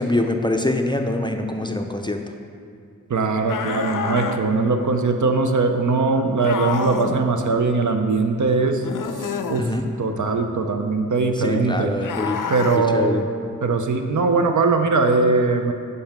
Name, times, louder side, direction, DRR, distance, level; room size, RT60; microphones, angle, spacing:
voice 1, 0.0-2.2 9.6-9.9 11.4-12.5 12.9-13.3, left 1 dB, 15° left, 4 dB, 0.4 m, -24 dB
voice 2, 3.1-8.8 9.5-9.7 10.0-11.9 12.5-13.2 13.6-15.7, right 3 dB, 65° right, 5 dB, 0.6 m, -20 dB
sound 1, 3.5-4.4 6.4-7.2 8.8-9.6 12.0-12.8, left 6 dB, 80° left, 0.5 m, -28 dB
5.5 x 5.3 x 5.9 m, 2.3 s
wide cardioid pair, 75°, 32 cm